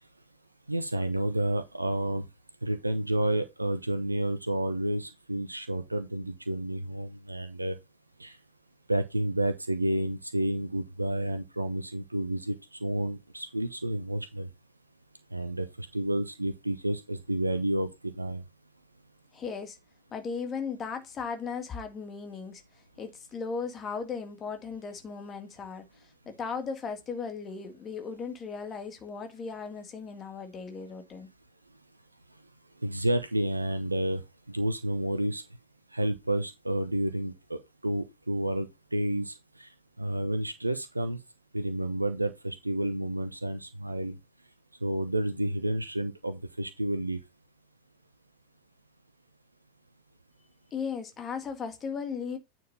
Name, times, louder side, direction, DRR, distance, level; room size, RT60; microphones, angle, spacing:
voice 1, 0.7-2.2 2.6-7.8 8.2-8.4 8.9-14.5 15.3-18.4 32.8-35.4 35.9-41.2 41.5-44.2 44.8-47.2, right 1 dB, 85° right, 0.8 m, -30 dB
voice 2, 19.3-19.8 20.1-22.6 23.0-31.3 50.7-52.4, left 5 dB, 25° left, 1.9 m, -37 dB
9.4 x 4.6 x 4.1 m
figure-of-eight pair, 90°, 0 cm